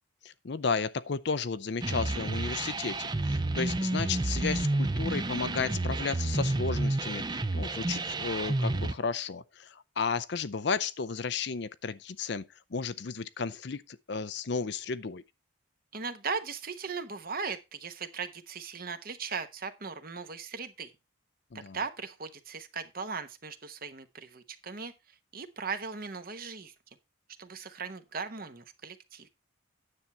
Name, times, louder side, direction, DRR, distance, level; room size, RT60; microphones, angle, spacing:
voice 1, 0.2-15.2 21.5-21.8, left 5 dB, 55° left, 0.5 m, -33 dB
sound 1, 1.8-8.9, right 2 dB, 20° right, 0.5 m, -30 dB
voice 2, 15.9-20.9 21.7-26.7 27.4-29.3, right 5 dB, 45° right, 1.0 m, -38 dB
9.7 x 7.3 x 4.3 m
head